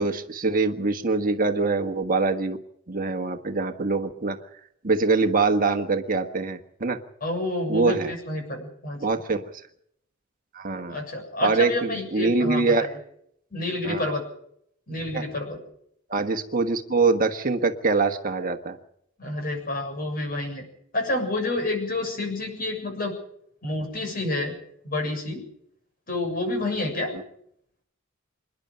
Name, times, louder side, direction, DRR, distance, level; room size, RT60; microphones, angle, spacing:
voice 1, 0.0-2.6 2.9-4.4 4.8-7.0 7.7-8.1 9.0-9.4 10.5-11.0 11.4-12.9 13.8-14.1 15.1-15.3 16.1-18.8, right 3 dB, 40° right, 6 dB, 1.4 m, -24 dB
voice 2, 7.2-9.0 10.9-13.0 13.5-14.2 14.9-15.6 19.2-20.6 20.9-23.1 23.6-24.5 24.8-25.5 26.1-27.2, left 2 dB, 45° left, 4 dB, 7.1 m, -29 dB
27.5 x 11.0 x 9.1 m, 0.71 s
head